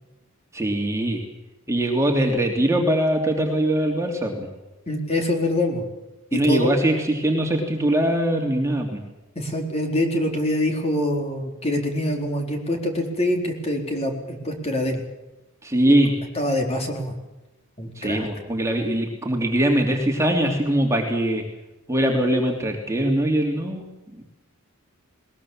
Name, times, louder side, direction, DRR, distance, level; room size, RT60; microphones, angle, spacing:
voice 1, 0.5-1.2 1.7-4.5 6.3-9.0 15.6-16.1 18.0-21.4 21.9-24.2, right 1 dB, 15° right, 1 dB, 3.1 m, -22 dB
voice 2, 4.9-5.9 6.3-6.7 9.4-15.0 16.3-17.1 17.8-18.3, left 1 dB, 30° left, 2 dB, 4.3 m, -25 dB
21.0 x 20.5 x 7.4 m, 1.0 s
head